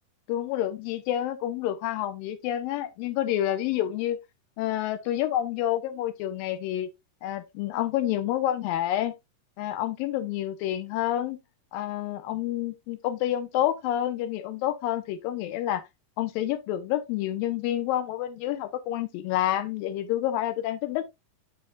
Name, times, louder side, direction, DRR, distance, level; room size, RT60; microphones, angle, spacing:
voice 1, 0.3-4.2 4.6-6.9 7.2-9.1 9.6-11.4 11.7-15.8 16.2-21.1, left 12 dB, 90° left, 2.6 m, -28 dB
9.4 x 5.8 x 2.3 m
omnidirectional pair, 4.0 m